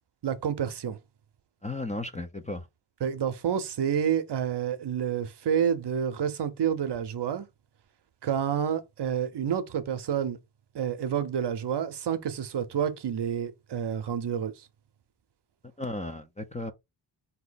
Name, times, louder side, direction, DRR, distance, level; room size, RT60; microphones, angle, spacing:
voice 1, 0.2-1.0 3.0-7.5 8.2-10.4 10.7-14.6, right 8 dB, 55° right, 0.8 m, -29 dB
voice 2, 1.6-2.7 15.8-16.7, left 2 dB, 15° left, 0.6 m, -34 dB
4.3 x 2.8 x 3.9 m
cardioid pair, 90°, 48 cm